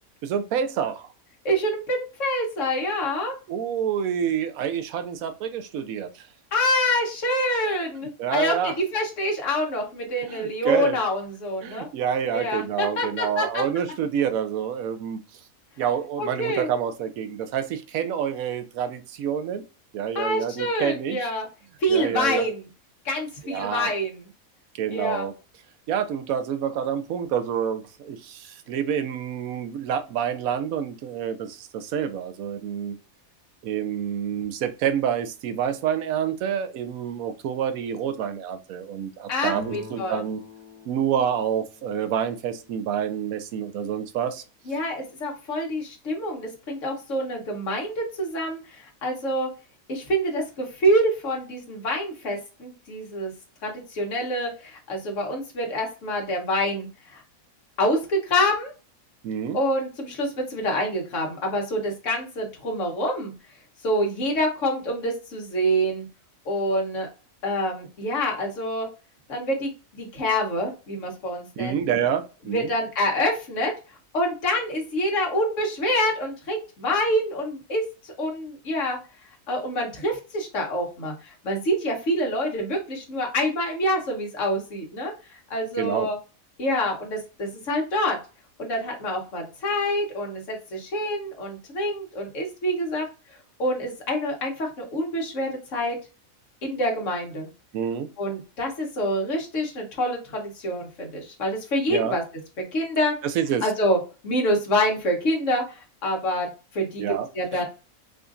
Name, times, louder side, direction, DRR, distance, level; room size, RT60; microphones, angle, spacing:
voice 1, 0.2-1.1 3.5-6.3 8.2-8.7 10.2-11.0 11.6-15.2 15.8-19.6 19.9-21.3 21.9-22.5 23.4-23.9 24.8-25.3 25.9-33.0 33.6-40.4 40.9-44.4 59.2-59.6 71.6-72.7 85.8-86.1 97.7-98.1 101.9-102.2 103.2-103.7 107.0-107.3 107.5-107.6, right 8 dB, 75° right, 1.0 m, -28 dB
voice 2, 1.4-3.3 6.5-11.9 12.3-13.6 16.2-16.7 20.1-21.5 21.8-22.6 23.0-24.3 24.9-25.3 39.3-40.2 44.7-49.5 49.9-53.3 53.6-57.2 57.8-58.7 59.5-63.3 63.8-66.0 66.4-67.1 67.4-68.9 69.3-71.8 72.4-73.7 74.1-79.0 79.5-86.2 86.6-88.2 88.6-93.1 93.6-96.0 96.6-97.5 98.2-102.2 102.6-103.1 103.6-104.0 104.2-107.6, equal, 60° left, 1.4 m, -26 dB
sound 1, 39.5-43.1, left 2 dB, 30° right, 0.9 m, -44 dB
4.9 x 2.5 x 2.4 m
omnidirectional pair, 1.5 m